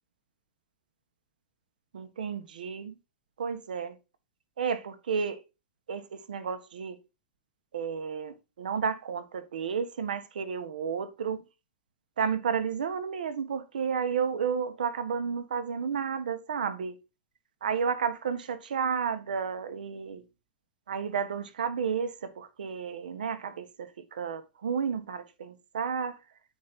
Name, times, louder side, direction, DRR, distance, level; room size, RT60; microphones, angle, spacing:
voice 1, 1.9-2.9 3.4-3.9 4.6-5.4 5.9-7.0 7.7-11.4 12.2-17.0 17.6-20.2 20.9-26.2, right 6 dB, 90° right, 1.4 m, -32 dB
8.6 x 5.1 x 4.2 m
hypercardioid pair, 140°, 5 cm